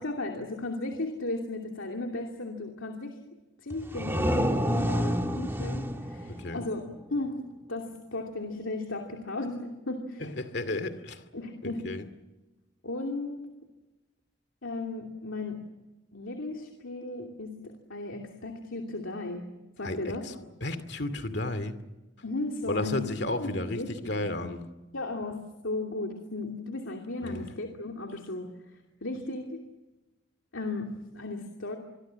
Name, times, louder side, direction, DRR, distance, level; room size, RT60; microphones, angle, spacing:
voice 1, 0.0-3.2 3.6-6.8 7.1-7.4 7.7-10.2 11.3-11.8 12.8-13.5 14.6-15.6 16.1-20.5 22.2-23.0 23.4-24.3 24.9-28.5 29.0-29.6 30.5-31.8, left 2 dB, 90° left, 2 dB, 2.7 m, -35 dB
sound 1, 3.7-7.3, equal, 10° right, 1.7 m, -29 dB
voice 2, 10.2-11.2 11.6-12.0 19.8-20.3 20.6-21.7 22.7-24.6 27.2-27.5, left 2 dB, 55° left, 11 dB, 2.4 m, -33 dB
26.5 x 23.5 x 7.6 m, 1.1 s
head